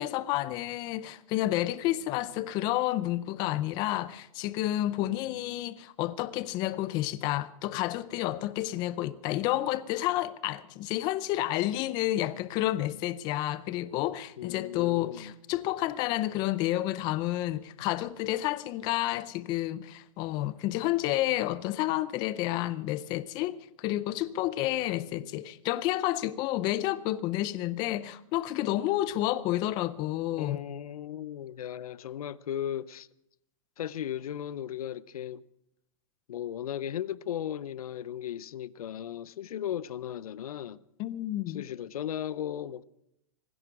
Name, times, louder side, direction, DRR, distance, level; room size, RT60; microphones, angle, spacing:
voice 1, 0.0-30.6 41.0-41.6, left 15 dB, 25° left, 0.5 m, -30 dB
voice 2, 5.0-5.7 14.4-15.3 30.4-33.1 33.8-35.4 36.3-40.8 41.5-42.8, left 10 dB, 90° left, 0.7 m, -36 dB
19.0 x 16.0 x 4.7 m
hypercardioid pair, 160°, 18 cm